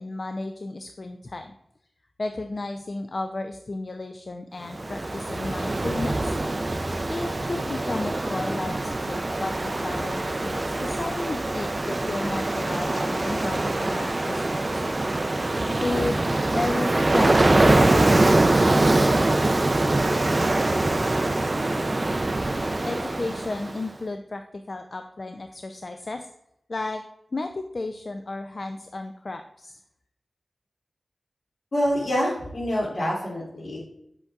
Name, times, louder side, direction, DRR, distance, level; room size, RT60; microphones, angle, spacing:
voice 1, 0.0-1.5 2.2-6.3 7.1-14.9 15.8-16.2 16.5-18.5 22.8-26.3 26.7-27.0 27.3-29.8, left 2 dB, 55° left, 6 dB, 0.4 m, -33 dB
Ocean, 4.7-23.8, right 2 dB, 40° right, 0.5 m, -23 dB
voice 2, 31.7-33.8, equal, 80° left, -4 dB, 2.7 m, -26 dB
7.9 x 5.8 x 2.4 m, 0.77 s
wide cardioid pair, 60°, 0 cm